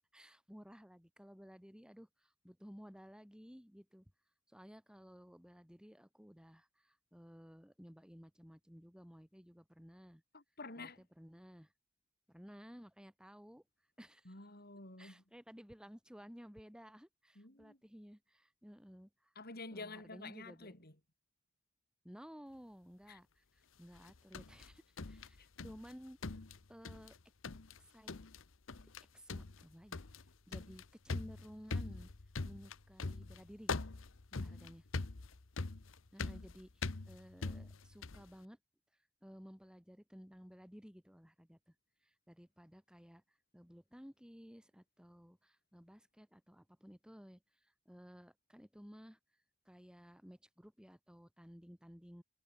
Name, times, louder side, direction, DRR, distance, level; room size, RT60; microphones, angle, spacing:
voice 1, 0.1-4.1 4.5-10.2 10.8-10.9 11.2-11.7 12.3-13.6 14.0-14.3 15.0-19.3 19.7-20.8 22.0-26.4 26.7-27.2 27.8-28.2 29.0-30.0 30.5-32.1 32.4-34.0 34.3-34.8 36.1-38.6 38.9-41.8 42.0-52.2, equal, 5° right, 5.2 m, -56 dB
voice 2, 10.3-11.0 14.2-15.2 17.4-17.8 19.4-21.0 23.1-23.2 25.4-25.5 34.3-34.7, left 3 dB, 50° left, 7.4 m, -50 dB
sound 1, 24.0-25.9 26.2-27.2 27.4-27.8 28.1-28.4 28.7-29.0 29.3-38.3, left 3 dB, 80° left, 1.0 m, -43 dB
head